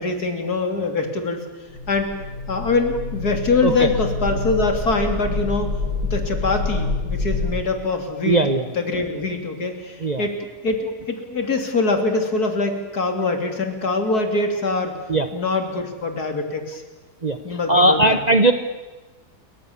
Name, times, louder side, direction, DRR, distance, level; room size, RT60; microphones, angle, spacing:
voice 1, 0.0-1.4 1.9-2.1 2.5-5.7 6.1-8.4 8.7-10.3 10.6-14.9 15.3-16.8 17.4-18.2, left 3 dB, 70° left, 5 dB, 3.7 m, -23 dB
sound 1, 1.7-7.5, left 3 dB, 90° right, 6.9 m, -27 dB
voice 2, 8.3-8.7 10.0-10.2 15.1-15.3 17.2-17.4 17.7-18.5, right 2 dB, 30° right, 8 dB, 1.1 m, -17 dB
28.5 x 23.5 x 7.2 m, 1.2 s
omnidirectional pair, 1.7 m